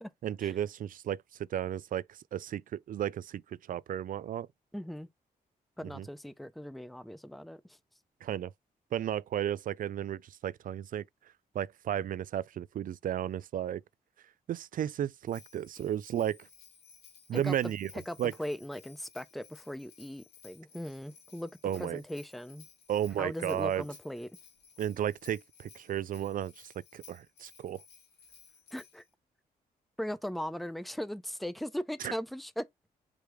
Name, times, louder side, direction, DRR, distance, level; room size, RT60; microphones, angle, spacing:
voice 1, 0.2-3.4 3.7-4.5 5.9-6.1 8.2-8.5 8.9-11.0 11.5-13.8 14.5-16.5 17.3-17.9 18.2-18.3 21.6-22.0 22.9-23.8 24.8-27.8 32.0-32.2, right 10 dB, 55° right, 0.4 m, -33 dB
voice 2, 4.7-5.1 5.8-7.8 17.3-21.5 21.8-22.7 23.2-24.3 28.7-29.0 30.0-32.6, equal, ahead, 0.7 m, -39 dB
Bell, 15.3-29.1, left 6 dB, 85° left, 2.2 m, -57 dB
5.0 x 3.4 x 3.1 m
cardioid pair, 60°, 17 cm